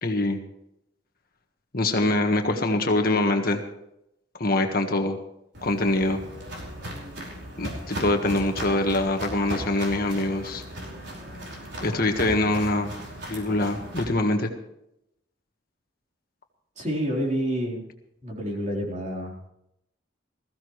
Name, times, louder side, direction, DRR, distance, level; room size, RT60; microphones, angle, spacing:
voice 1, 0.0-0.4 1.7-3.6 4.4-5.2 5.6-6.2 7.6-10.6 11.8-12.9 13.3-14.5, left 2 dB, 50° left, 4 dB, 1.6 m, -24 dB
Walk footsteps, 5.5-14.0, equal, 60° right, 5.2 m, -37 dB
voice 2, 16.8-17.8 18.2-19.5, equal, 40° right, -2 dB, 3.9 m, -28 dB
20.5 x 15.5 x 3.2 m, 0.80 s
head